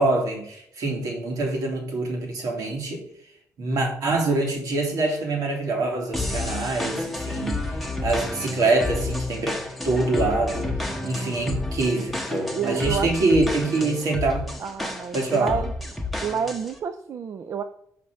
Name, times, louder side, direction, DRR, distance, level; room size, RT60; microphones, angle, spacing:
voice 1, 0.0-3.0 3.6-7.6 8.0-10.7 11.0-14.5 15.1-15.6, right 2 dB, 75° right, 2.6 m, -25 dB
sound 1, 6.1-16.8, left 2 dB, ahead, 1.2 m, -30 dB
voice 2, 12.5-13.1 14.6-15.7 16.2-17.6, right 7 dB, 55° right, 0.5 m, -29 dB
5.9 x 5.3 x 6.4 m
cardioid pair, 125°, 6 cm